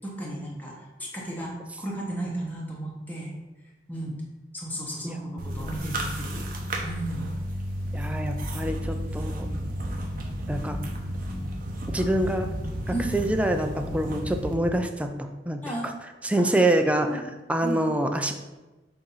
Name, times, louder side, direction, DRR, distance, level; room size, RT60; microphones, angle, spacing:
voice 1, 0.0-0.7 1.0-3.3 3.9-4.2 4.5-6.4 6.8-7.3 12.9-13.1 15.6-15.9 16.4-16.5 17.1-17.2 17.6-17.8, right 1 dB, 10° left, -4 dB, 1.0 m, -34 dB
sound 1, 5.4-14.5, equal, 50° right, 0.9 m, -32 dB
voice 2, 7.9-9.5 10.5-10.8 11.9-12.5 13.1-15.9 16.2-17.2 17.5-18.3, right 1 dB, 5° right, 5 dB, 0.4 m, -26 dB
7.0 x 2.6 x 5.4 m, 1.1 s
head